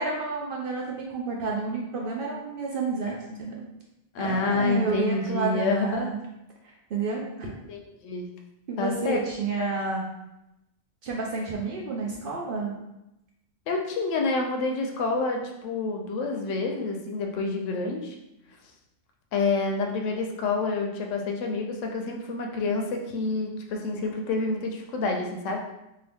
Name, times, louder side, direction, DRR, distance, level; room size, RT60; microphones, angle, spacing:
voice 1, 0.0-3.5 4.2-6.2 6.9-7.5 8.7-10.0 11.0-12.7, right 3 dB, 65° right, -2 dB, 0.5 m, -30 dB
voice 2, 4.1-6.1 7.7-8.3 8.8-9.2 9.6-9.7 13.7-18.1 19.3-25.6, left 3 dB, 70° left, 2 dB, 0.9 m, -28 dB
2.7 x 2.6 x 3.4 m, 0.90 s
omnidirectional pair, 1.4 m